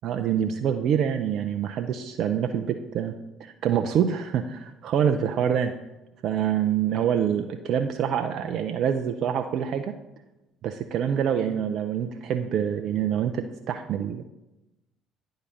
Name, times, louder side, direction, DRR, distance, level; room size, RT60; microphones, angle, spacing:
voice 1, 0.0-3.1 3.4-5.7 6.2-9.9 10.6-14.2, right 8 dB, 60° right, 7 dB, 0.4 m, -26 dB
9.6 x 3.8 x 5.6 m, 0.96 s
hypercardioid pair, 55°, 0 cm